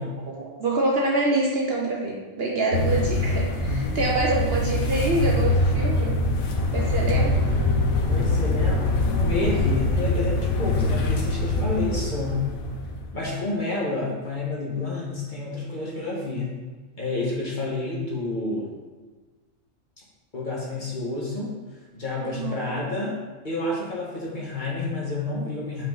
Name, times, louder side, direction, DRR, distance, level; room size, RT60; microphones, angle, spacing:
voice 1, 0.3-6.2 6.7-7.5 22.1-22.8, right 2 dB, 55° right, -2 dB, 0.9 m, -26 dB
sound 1, 2.7-13.3, left 2 dB, 80° left, 1.2 m, -24 dB
voice 2, 3.6-4.0 8.0-12.5 13.1-16.5 17.0-18.7 20.3-21.5 21.9-23.2 23.4-25.9, left 2 dB, 35° left, -5 dB, 1.5 m, -29 dB
5.6 x 4.8 x 3.9 m, 1.3 s
omnidirectional pair, 1.4 m